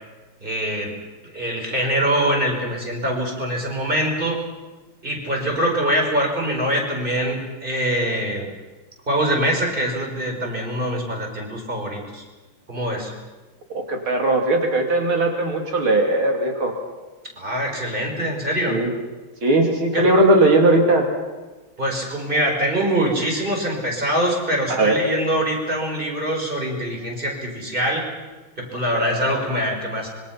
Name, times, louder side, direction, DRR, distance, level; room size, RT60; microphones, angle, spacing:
voice 1, 0.4-4.4 5.0-8.5 9.1-12.2 12.7-13.1 17.4-18.8 19.9-20.1 21.8-28.1 28.6-30.1, right 1 dB, 25° right, 1 dB, 4.9 m, -24 dB
voice 2, 13.7-16.8 18.7-18.9 19.4-21.1 24.7-25.0 28.9-29.2, right 2 dB, 90° right, 2 dB, 3.6 m, -19 dB
25.5 x 23.0 x 5.8 m, 1.2 s
omnidirectional pair, 2.2 m